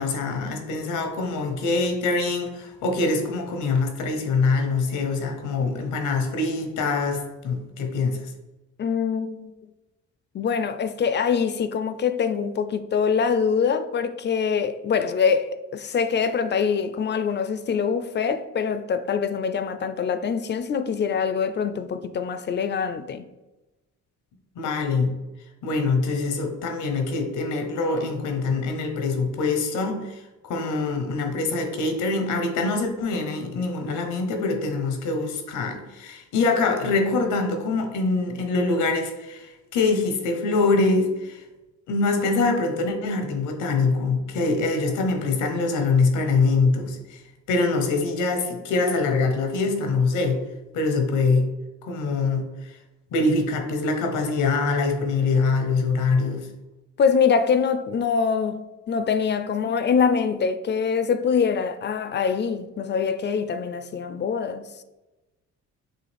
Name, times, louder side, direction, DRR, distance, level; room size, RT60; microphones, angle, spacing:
voice 1, 0.0-8.2 24.6-25.1 25.6-41.4 41.9-47.2 47.5-50.4 50.7-51.5 51.8-52.5 53.1-56.5, left 3 dB, 90° left, 0.9 m, -24 dB
voice 2, 8.8-9.5 10.3-23.3 57.0-64.8, left 6 dB, 35° left, 0.4 m, -24 dB
6.3 x 2.4 x 3.4 m
cardioid pair, 90°, 30 cm